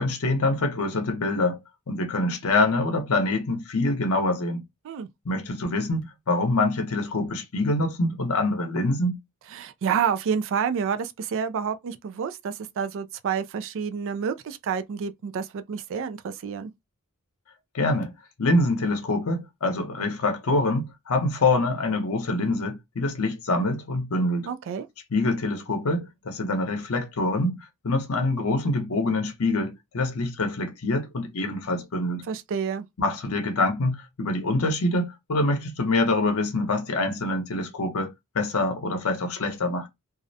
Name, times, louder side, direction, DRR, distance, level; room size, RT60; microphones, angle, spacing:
voice 1, 0.0-1.6 1.9-4.6 5.2-9.2 17.7-18.1 18.4-24.5 25.1-27.5 27.8-32.2 33.0-39.9, left 2 dB, 65° left, 0.7 m, -25 dB
voice 2, 9.5-16.7 24.5-24.9 32.3-32.9, right 7 dB, 60° right, 0.3 m, -29 dB
2.4 x 2.0 x 2.6 m
head